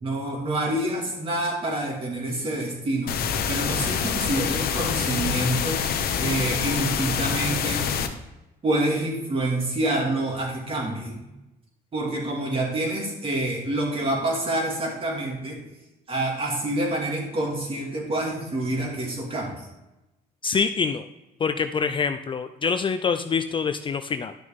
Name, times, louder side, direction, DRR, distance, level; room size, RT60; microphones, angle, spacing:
voice 1, 0.0-3.1 3.5-7.9 8.6-11.2 11.9-15.6 16.1-19.7, right 1 dB, 35° right, 0 dB, 2.5 m, -27 dB
sound 1, 3.1-8.1, left 7 dB, 65° left, 1.0 m, -26 dB
voice 2, 20.4-21.0 21.4-24.3, left 5 dB, 30° left, 9 dB, 0.4 m, -25 dB
11.0 x 6.3 x 3.6 m, 0.97 s
cardioid pair, 110°, 17 cm